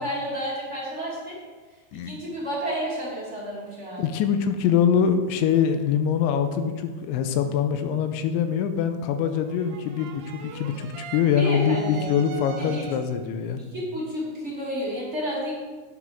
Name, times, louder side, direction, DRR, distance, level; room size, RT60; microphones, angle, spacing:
voice 1, 0.0-1.4 1.9-4.1 11.4-12.0 12.3-12.8 13.6-15.5, equal, 20° right, -7 dB, 2.4 m, -31 dB
voice 2, 1.9-2.2 4.0-13.6, left 7 dB, 85° left, 8 dB, 3.0 m, -24 dB
sound 1, 9.5-13.3, right 8 dB, 80° right, 2.9 m, -41 dB
11.0 x 9.9 x 3.6 m, 1.4 s
omnidirectional pair, 5.3 m